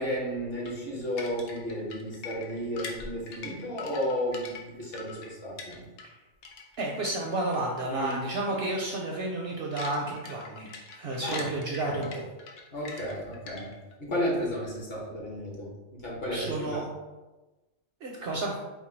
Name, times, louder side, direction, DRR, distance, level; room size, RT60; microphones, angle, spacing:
voice 1, 0.0-5.9 7.9-8.2 11.2-11.5 11.8-12.0 12.7-13.7 14.0-16.8, equal, 50° left, -3 dB, 1.2 m, -33 dB
sound 1, 0.6-6.2 6.4-7.6 8.0-8.2 8.5-8.7 9.1-13.9, left 4 dB, 85° left, 1.1 m, -43 dB
voice 2, 6.8-12.2 16.3-16.9 18.0-18.6, right 2 dB, 60° right, -1 dB, 0.7 m, -31 dB
4.5 x 2.2 x 4.3 m, 1.1 s
omnidirectional pair, 1.4 m